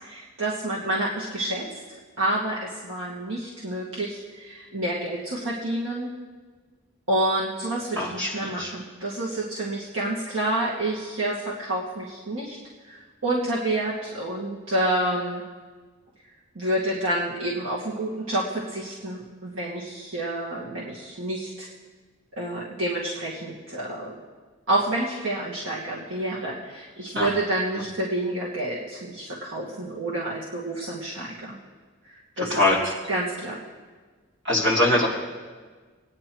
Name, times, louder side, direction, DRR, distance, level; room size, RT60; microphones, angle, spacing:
voice 1, 0.0-1.7 2.2-6.1 7.1-12.6 12.8-15.4 16.5-21.7 22.3-24.1 24.7-31.6 32.0-32.8 33.1-33.6, right 1 dB, 85° right, -6 dB, 1.7 m, -29 dB
voice 2, 8.0-8.7 27.1-27.3 32.4-32.9 34.4-35.1, left 1 dB, 65° right, -5 dB, 3.3 m, -23 dB
22.5 x 9.7 x 3.0 m, 1.4 s
head